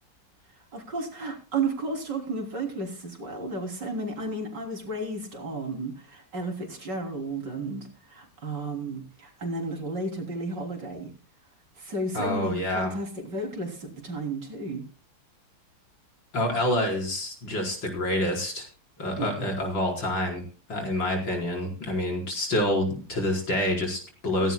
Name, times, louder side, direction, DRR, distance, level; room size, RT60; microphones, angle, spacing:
voice 1, 0.7-11.1 11.8-14.8 19.2-19.3, right 2 dB, 55° right, 2 dB, 3.9 m, -33 dB
voice 2, 12.1-12.9 16.3-18.7 19.0-20.4 20.7-24.5, left 1 dB, 65° left, 0 dB, 5.3 m, -27 dB
17.0 x 16.5 x 2.2 m, 0.37 s
omnidirectional pair, 2.3 m